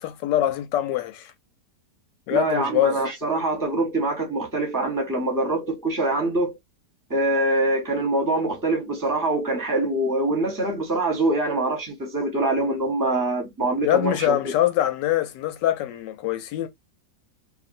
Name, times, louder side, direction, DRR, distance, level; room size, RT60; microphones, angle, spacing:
voice 1, 0.0-1.3 2.3-3.0 13.8-16.7, left 12 dB, 90° left, 1.2 m, -24 dB
voice 2, 2.3-6.6 7.1-14.4, right 2 dB, 15° right, 0.7 m, -24 dB
2.6 x 2.6 x 2.5 m
omnidirectional pair, 1.8 m